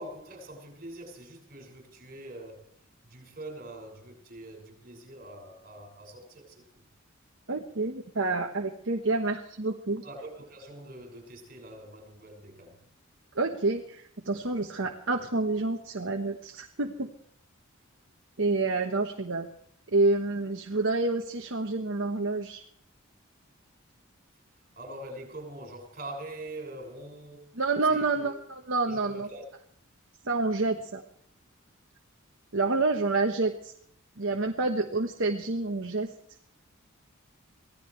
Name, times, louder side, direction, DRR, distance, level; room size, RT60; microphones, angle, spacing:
voice 1, 0.0-2.7 3.0-6.6 10.0-12.8 24.8-27.6 27.8-28.4 28.8-29.4, right 1 dB, 40° right, 6.1 m, -44 dB
voice 2, 7.5-10.0 13.3-17.1 18.4-19.5 19.9-22.6 27.5-29.3 30.2-31.0 32.5-33.7 34.2-36.1, right 3 dB, 60° right, 1.3 m, -28 dB
24.5 x 17.0 x 3.3 m
head